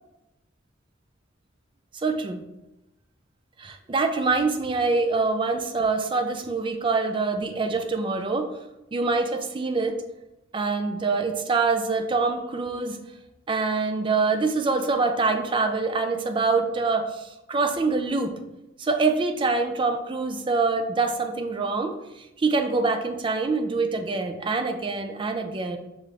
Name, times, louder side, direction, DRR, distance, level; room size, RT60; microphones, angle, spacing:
voice 1, 2.0-2.4 3.6-8.5 8.9-10.0 10.5-13.0 13.5-18.3 18.8-25.8, right 3 dB, 25° right, 6 dB, 0.4 m, -25 dB
5.7 x 2.4 x 3.3 m, 0.95 s
head